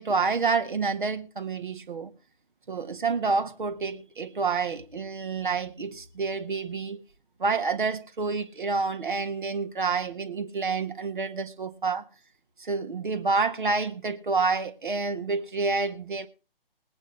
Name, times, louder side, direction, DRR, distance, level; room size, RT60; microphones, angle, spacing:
voice 1, 0.0-2.1 2.7-7.0 7.4-12.0 12.6-16.3, right 4 dB, 55° right, 1.6 m, -28 dB
20.5 x 9.0 x 3.3 m
figure-of-eight pair, 140°, 29 cm